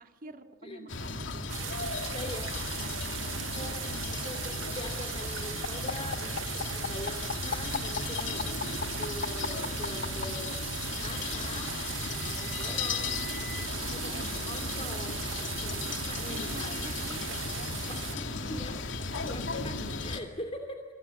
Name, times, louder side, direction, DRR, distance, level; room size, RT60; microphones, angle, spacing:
voice 1, 0.0-1.9 3.6-4.5 14.1-15.2 16.2-17.8 18.1-19.3, right 2 dB, 45° right, 5 dB, 2.1 m, -50 dB
sound 1, 0.9-20.2, left 3 dB, 75° left, 2.4 m, -35 dB
sound 2, 1.5-18.2, right 12 dB, 80° right, 0.8 m, -39 dB
voice 2, 2.1-2.5 3.5-13.2 13.8-17.0 17.9-18.8 19.2-20.8, left 1 dB, 30° left, 5 dB, 2.5 m, -43 dB
sound 3, 5.6-10.2 11.4-13.7, left 5 dB, 55° left, 0.8 m, -37 dB
27.5 x 26.0 x 8.3 m, 1.3 s
head